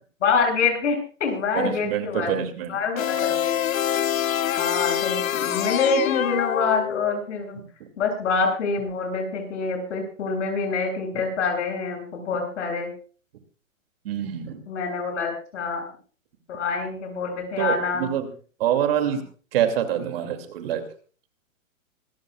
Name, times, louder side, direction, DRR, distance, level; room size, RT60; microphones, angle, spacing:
voice 1, 0.2-3.6 4.6-7.6 8.0-12.9 14.7-15.8 16.5-18.1, left 4 dB, 60° left, 2 dB, 7.6 m, -26 dB
voice 2, 1.5-2.8 7.6-7.7 14.0-14.6 17.6-18.3 18.6-19.2 19.5-20.8, right 10 dB, 45° right, 7 dB, 2.7 m, -25 dB
sound 1, 3.0-7.3, left 10 dB, 80° left, 0.8 m, -25 dB
25.5 x 14.5 x 2.4 m, 0.40 s
hypercardioid pair, 155°, 41 cm